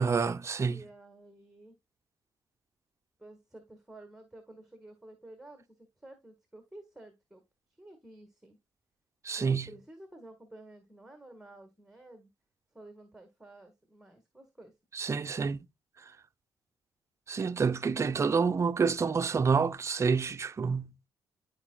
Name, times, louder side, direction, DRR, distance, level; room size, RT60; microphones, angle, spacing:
voice 1, 0.0-0.8 9.2-9.7 14.9-15.7 17.3-20.9, right 5 dB, 35° right, 0.6 m, -28 dB
voice 2, 0.6-1.7 3.2-7.4 7.8-8.6 9.4-12.3 12.7-14.7, right 1 dB, 5° right, 1.6 m, -52 dB
12.0 x 4.7 x 2.3 m
cardioid pair, 85°, 8 cm